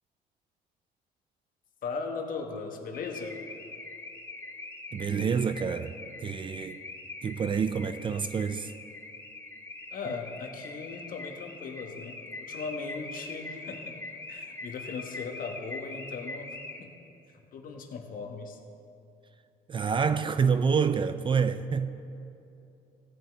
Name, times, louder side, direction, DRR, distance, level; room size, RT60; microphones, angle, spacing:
voice 1, 1.8-3.4 9.9-14.0 14.3-16.9 17.5-18.6, left 4 dB, 55° left, 1.3 m, -38 dB
Car / Alarm, 2.9-17.1, left 3 dB, 15° left, 0.9 m, -43 dB
voice 2, 4.9-6.8 7.2-8.7 19.7-21.9, right 6 dB, 30° right, 0.4 m, -27 dB
16.5 x 7.5 x 3.6 m
cardioid pair, 110°, 17 cm